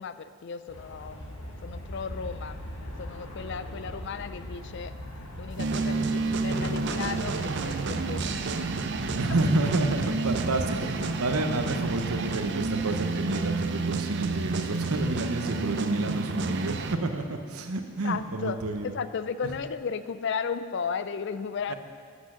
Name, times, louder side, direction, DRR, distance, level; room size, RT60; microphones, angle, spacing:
voice 1, 0.0-2.6 3.0-5.0 5.4-8.2 18.0-18.6 18.8-21.7, left 6 dB, 50° left, 13 dB, 0.4 m, -35 dB
Aircraft, 0.7-12.9, left 1 dB, 70° left, 1.3 m, -42 dB
sound 1, 5.6-16.9, right 3 dB, 50° right, 0.5 m, -30 dB
voice 2, 9.2-18.9 21.7-21.8, right 2 dB, 80° right, 6 dB, 0.9 m, -29 dB
8.4 x 8.1 x 6.2 m, 2.2 s
head